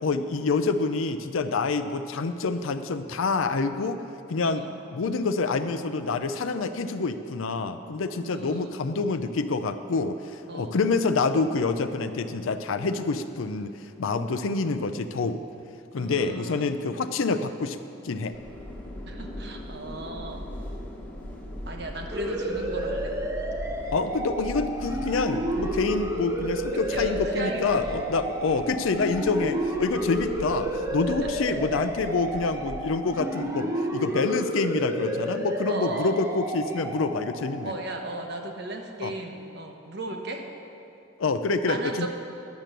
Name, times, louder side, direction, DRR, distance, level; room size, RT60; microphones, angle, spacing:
voice 1, 0.0-4.0 4.3-4.6 4.9-15.4 15.9-17.8 18.0-18.3 23.9-37.7 39.0-39.1 41.2-42.1, left 3 dB, 80° left, 9 dB, 0.5 m, -27 dB
voice 2, 4.4-4.8 8.3-8.7 10.5-10.8 15.9-16.8 19.1-20.4 21.7-23.1 26.9-28.1 31.2-31.3 35.7-36.2 37.6-40.5 41.7-42.1, right 2 dB, 55° right, 3 dB, 1.1 m, -36 dB
sound 1, 18.3-32.8, equal, 10° left, 1.1 m, -39 dB
sound 2, 22.1-38.5, right 1 dB, 15° right, 0.7 m, -31 dB
10.5 x 7.6 x 6.7 m, 2.7 s
head